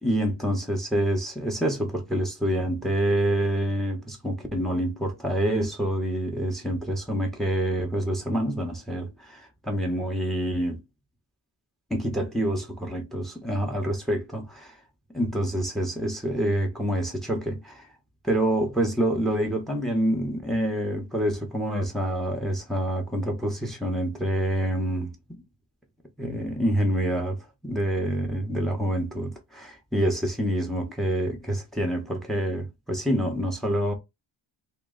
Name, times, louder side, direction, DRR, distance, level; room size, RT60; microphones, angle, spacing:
voice 1, 0.0-10.8 11.9-14.8 15.1-17.9 18.2-25.4 26.2-33.9, right 1 dB, ahead, 0.8 m, -27 dB
3.1 x 3.0 x 3.7 m
wide cardioid pair, 165°, 47 cm